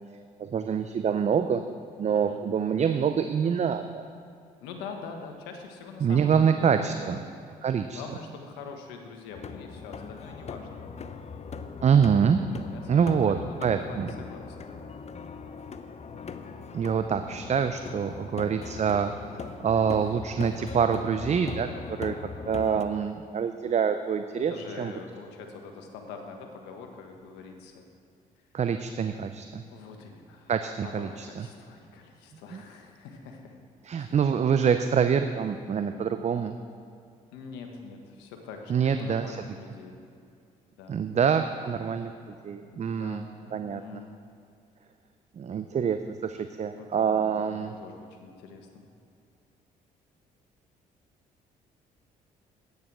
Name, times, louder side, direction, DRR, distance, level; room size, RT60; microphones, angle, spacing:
voice 1, 0.4-1.6 2.0-4.0 6.0-7.2 7.6-8.0 11.8-12.4 12.9-13.4 13.6-14.1 16.7-19.1 19.6-22.1 22.5-24.5 24.8-24.9 28.5-29.6 30.5-31.5 32.5-32.6 33.8-36.5 38.7-39.4 40.9-42.1 42.4-43.2 43.5-44.0 45.4-47.7, right 7 dB, 40° right, 8 dB, 0.6 m, -25 dB
voice 2, 2.1-2.4 4.6-7.3 7.9-10.8 12.7-14.9 22.4-23.0 24.3-27.8 29.7-30.5 30.8-33.6 34.0-34.3 35.7-36.2 37.3-40.1 40.8-41.2 42.7-44.1 46.7-48.8, left 5 dB, 85° left, 3 dB, 1.4 m, -44 dB
sound 1, 9.3-22.8, left 5 dB, 40° left, 0.8 m, -40 dB
10.5 x 9.4 x 6.2 m, 2.4 s
supercardioid pair, 60°, 17 cm